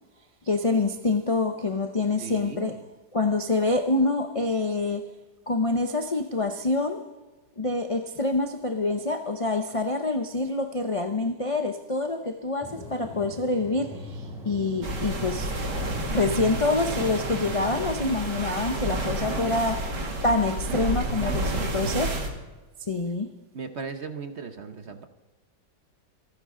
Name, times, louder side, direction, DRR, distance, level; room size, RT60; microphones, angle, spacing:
voice 1, 0.4-2.8 3.1-5.1 5.5-7.0 7.6-15.7 16.1-19.9 20.2-22.2 22.8-23.3, left 3 dB, 35° left, 0.5 m, -26 dB
voice 2, 2.2-2.8 20.7-20.9 21.2-22.1 23.5-25.1, right 5 dB, 45° right, 1.1 m, -38 dB
sound 1, 12.6-17.9, equal, ahead, 5.6 m, -40 dB
sound 2, 14.8-22.3, right 1 dB, 75° right, 2.7 m, -30 dB
27.0 x 9.9 x 3.8 m
omnidirectional pair, 1.8 m